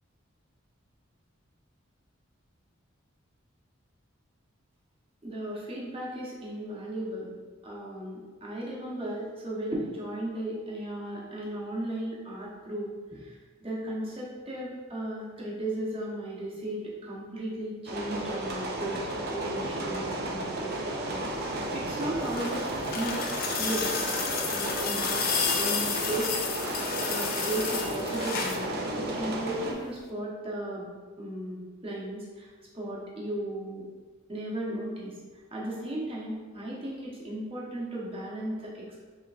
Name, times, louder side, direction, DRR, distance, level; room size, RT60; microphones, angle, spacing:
voice 1, 5.2-7.3 7.6-19.0 19.3-23.3 23.6-24.2 24.5-26.4 27.1-30.9 31.2-33.9 34.3-35.2 35.5-39.0, right 1 dB, 30° right, -5 dB, 0.9 m, -36 dB
sound 1, 17.9-29.7, right 1 dB, 50° right, 0.5 m, -33 dB
sound 2, 21.9-28.7 30.0-30.1, left 5 dB, 45° left, 0.5 m, -31 dB
5.7 x 3.0 x 2.4 m, 1.4 s
head